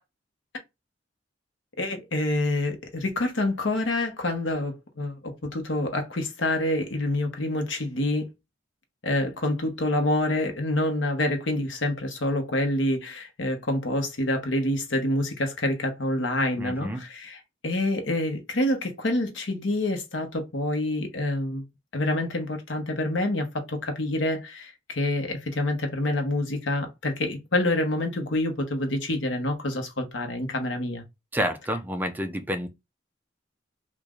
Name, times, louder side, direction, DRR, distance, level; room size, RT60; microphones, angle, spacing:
voice 1, 1.8-8.3 9.0-21.6 21.9-31.0, left 1 dB, 75° left, 1.0 m, -27 dB
voice 2, 16.6-17.0 31.3-32.7, equal, 10° right, 0.4 m, -29 dB
3.1 x 2.5 x 3.6 m
head